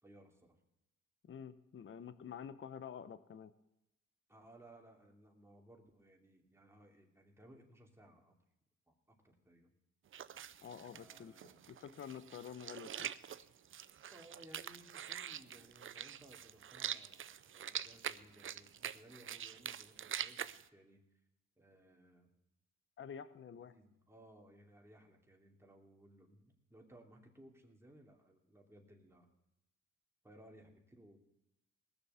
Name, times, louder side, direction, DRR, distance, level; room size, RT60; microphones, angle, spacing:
voice 1, 0.0-0.6 4.3-8.3 8.9-9.7 10.9-11.6 14.1-21.0 21.6-22.3 23.7-29.3 30.2-31.2, right 1 dB, 10° right, 1 dB, 2.9 m, -61 dB
voice 2, 1.3-3.5 10.6-11.3 11.7-13.1 23.0-23.7, left 7 dB, 40° left, 13 dB, 0.8 m, -48 dB
sound 1, 10.1-20.7, right 9 dB, 45° right, 0.6 m, -45 dB
19.0 x 6.9 x 6.9 m, 0.88 s
cardioid pair, 90°, 30 cm